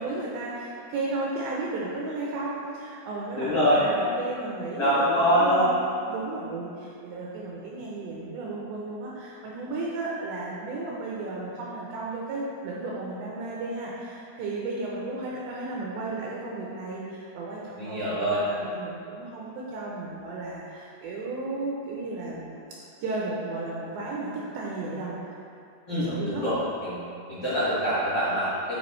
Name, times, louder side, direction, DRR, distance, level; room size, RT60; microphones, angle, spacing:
voice 1, 0.0-22.6 23.0-25.4 25.9-26.4, right 2 dB, 80° right, -4 dB, 2.6 m, -34 dB
voice 2, 3.3-3.8 4.8-5.7 17.8-18.4 25.9-27.0 27.3-28.8, equal, 65° left, -11 dB, 1.3 m, -24 dB
10.5 x 4.6 x 3.1 m, 2.6 s
omnidirectional pair, 5.6 m